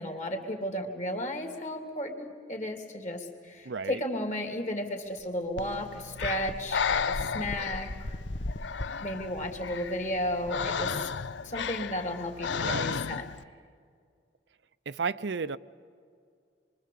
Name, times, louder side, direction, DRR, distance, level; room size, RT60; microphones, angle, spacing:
voice 1, 0.0-8.2 9.0-11.1 11.4-13.2, equal, 40° left, 2.7 m, -34 dB
voice 2, 3.6-4.0 12.5-13.0 14.9-15.6, right 5 dB, 75° right, 0.6 m, -33 dB
sound 1, 5.2-5.3 5.6-5.7 6.2-11.4, left 1 dB, 55° left, 0.9 m, -39 dB
Breathing, 5.6-13.4, left 6 dB, 80° left, 0.6 m, -34 dB
26.5 x 23.5 x 8.6 m
head